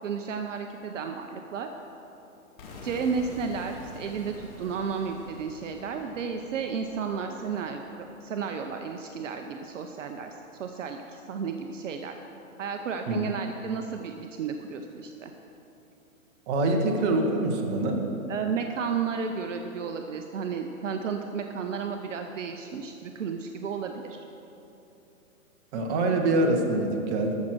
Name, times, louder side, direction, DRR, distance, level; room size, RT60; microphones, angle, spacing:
voice 1, 0.0-1.7 2.8-12.2 12.6-15.3 18.3-24.2, right 6 dB, 60° right, 5 dB, 0.8 m, -33 dB
sound 1, 2.6-8.5, left 2 dB, 40° left, 2.2 m, -46 dB
voice 2, 16.5-18.0 25.7-27.3, right 2 dB, 30° right, 2 dB, 1.3 m, -25 dB
14.0 x 6.3 x 6.3 m, 3.0 s
hypercardioid pair, 145°, 43 cm